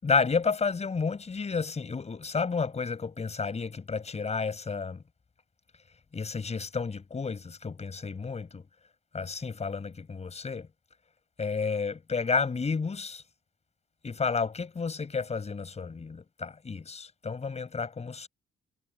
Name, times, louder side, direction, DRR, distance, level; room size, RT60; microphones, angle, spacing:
voice 1, 0.0-5.0 6.1-8.6 9.1-10.7 11.4-13.2 14.0-18.3, left 5 dB, 35° left, 5.1 m, -31 dB
cardioid pair, 90°, 20 cm